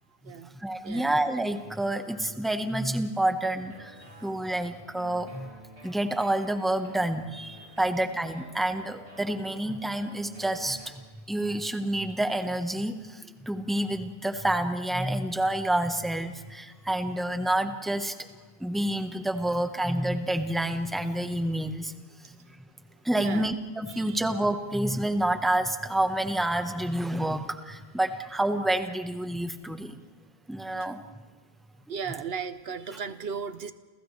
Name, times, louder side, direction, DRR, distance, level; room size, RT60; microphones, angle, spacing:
voice 1, 0.5-5.6 5.8-18.1 18.6-21.9 23.0-30.0 30.5-31.0, right 1 dB, ahead, 6 dB, 1.2 m, -28 dB
sound 1, 3.6-10.9, right 1 dB, 35° right, 8.0 m, -49 dB
voice 2, 23.9-24.2 31.9-33.7, right 6 dB, 70° right, 11 dB, 1.0 m, -36 dB
29.5 x 28.5 x 3.3 m, 1.4 s
omnidirectional pair, 1.1 m